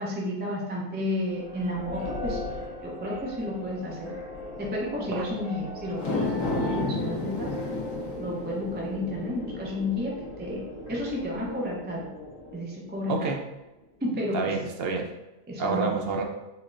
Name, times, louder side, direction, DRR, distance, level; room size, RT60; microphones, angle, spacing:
voice 1, 0.0-2.4 2.8-4.1 4.6-7.5 8.1-12.1 12.5-13.3 14.0-14.6 15.5-16.0, left 1 dB, 15° right, -3 dB, 0.4 m, -32 dB
sound 1, 1.2-12.5, left 2 dB, 35° left, 1.0 m, -39 dB
sound 2, 5.9-12.4 12.8-12.9, left 2 dB, 75° left, 1.1 m, -34 dB
voice 2, 13.1-13.4 14.3-15.1 15.6-16.2, right 4 dB, 60° right, 2 dB, 0.7 m, -28 dB
4.2 x 3.1 x 2.5 m, 1.0 s
omnidirectional pair, 1.3 m